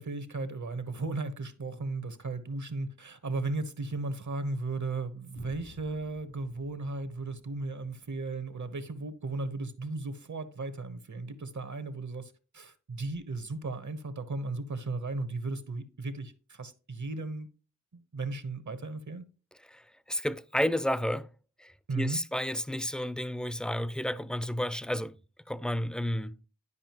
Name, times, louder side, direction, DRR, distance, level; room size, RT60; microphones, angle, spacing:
voice 1, 0.0-17.5 17.9-19.3 21.9-22.2, right 3 dB, 65° right, 1.1 m, -36 dB
sound 1, 5.3-9.3, left 1 dB, 85° left, 3.1 m, -55 dB
voice 2, 19.7-21.3 21.6-25.2 25.5-26.4, equal, 5° left, 0.5 m, -31 dB
11.0 x 5.1 x 3.0 m
wide cardioid pair, 55°, 31 cm